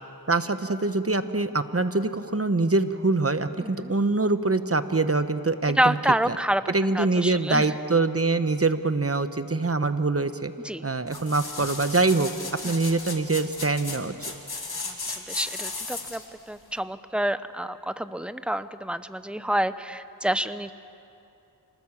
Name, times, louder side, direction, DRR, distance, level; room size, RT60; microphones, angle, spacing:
voice 1, 0.3-6.0 6.3-6.4 6.7-10.5 10.8-12.3 12.6-14.1, right 3 dB, 35° right, 10 dB, 1.1 m, -24 dB
voice 2, 3.6-3.9 5.8-6.6 6.9-7.7 10.6-10.8 12.6-12.7 14.8-16.2 16.5-20.7, right 1 dB, 5° right, 12 dB, 0.8 m, -28 dB
sound 1, 11.1-16.3 16.8-16.9, left 3 dB, 65° left, 2.3 m, -35 dB
26.5 x 19.5 x 7.3 m, 2.6 s
wide cardioid pair, 45°, 41 cm